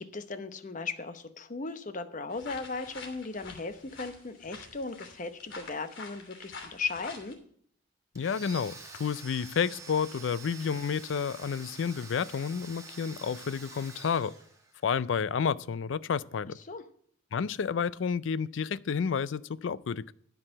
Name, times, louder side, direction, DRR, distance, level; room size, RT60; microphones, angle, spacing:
voice 1, 0.0-7.4 16.7-16.8, left 4 dB, 40° left, 0.8 m, -37 dB
sound 1, 2.3-7.3, left 4 dB, 90° left, 2.9 m, -47 dB
voice 2, 8.1-14.4 14.8-16.6 17.3-20.1, left 6 dB, 70° left, 0.4 m, -30 dB
Domestic sounds home sounds, 8.2-14.9, right 3 dB, 15° right, 1.5 m, -48 dB
12.0 x 4.8 x 7.8 m
head